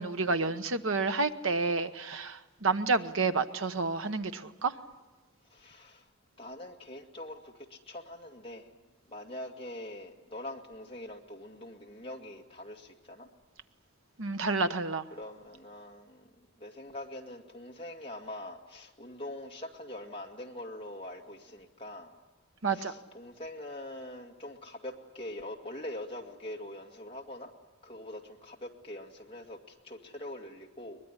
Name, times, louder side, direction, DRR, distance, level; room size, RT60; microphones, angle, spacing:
voice 1, 0.0-4.7 14.2-15.0 22.6-22.9, right 3 dB, 70° right, 10 dB, 1.1 m, -29 dB
voice 2, 5.5-6.1 6.4-8.7 9.1-13.3 15.1-22.1 22.7-27.5 27.8-31.0, left 1 dB, 25° left, 1 dB, 2.3 m, -43 dB
23.0 x 20.5 x 9.9 m, 1.2 s
head